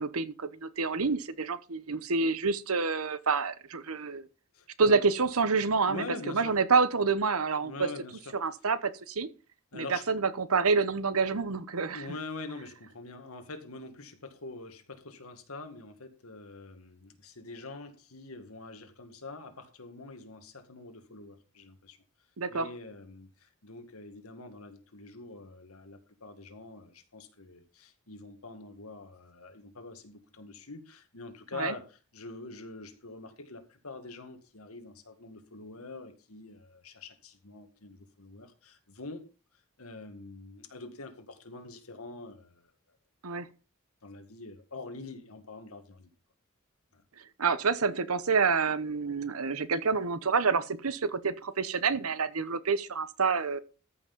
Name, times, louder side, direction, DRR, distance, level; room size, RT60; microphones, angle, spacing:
voice 1, 0.0-4.3 4.8-6.0 6.3-7.9 8.4-9.3 9.7-12.0 22.4-22.7 31.6-31.7 43.2-43.5 47.4-53.6, right 4 dB, 75° right, 1.0 m, -28 dB
voice 2, 4.5-5.0 5.9-6.6 7.6-8.4 9.7-10.1 11.9-22.0 22.5-39.3 39.8-42.7 44.0-46.1 46.9-47.0, left 3 dB, 75° left, 1.9 m, -45 dB
14.0 x 6.0 x 5.4 m
head